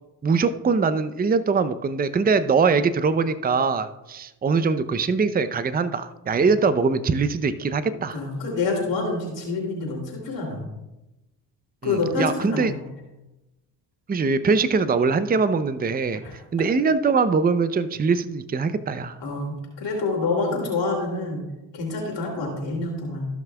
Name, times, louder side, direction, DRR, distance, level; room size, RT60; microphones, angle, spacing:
voice 1, 0.2-8.2 11.8-12.7 14.1-16.2 16.5-19.2, right 4 dB, 20° right, 13 dB, 0.6 m, -22 dB
voice 2, 7.9-10.7 11.8-12.8 16.2-16.7 19.2-21.4 21.7-23.3, left 3 dB, 60° left, -2 dB, 3.0 m, -27 dB
16.5 x 6.0 x 2.3 m, 1.0 s
hypercardioid pair, 50°, 49 cm